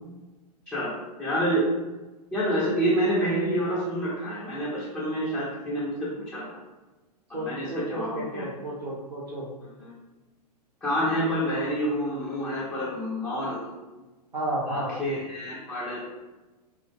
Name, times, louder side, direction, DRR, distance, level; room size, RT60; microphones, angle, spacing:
voice 1, 1.2-1.7 2.3-5.9 6.2-6.6 7.4-8.5 9.8-9.9 10.8-13.8 14.7-16.0, equal, 10° left, -9 dB, 0.6 m, -28 dB
voice 2, 7.3-9.5 14.3-14.9, right 1 dB, 80° right, -6 dB, 0.6 m, -32 dB
2.4 x 2.1 x 2.7 m, 1.1 s
hypercardioid pair, 110°, 21 cm